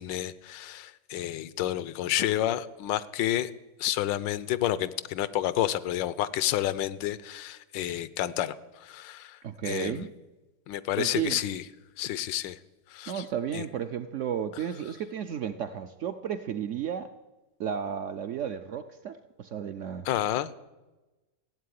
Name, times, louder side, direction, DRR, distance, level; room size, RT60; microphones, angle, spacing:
voice 1, 0.0-3.5 3.8-9.4 9.6-10.1 10.7-11.6 12.0-12.6 12.9-13.2 13.5-13.6 20.0-20.5, left 13 dB, 90° left, 17 dB, 1.4 m, -30 dB
voice 2, 9.4-10.1 11.0-11.4 13.1-17.1 17.6-20.1, right 8 dB, 75° right, 10 dB, 0.7 m, -33 dB
15.5 x 8.3 x 9.5 m, 1.1 s
omnidirectional pair, 1.9 m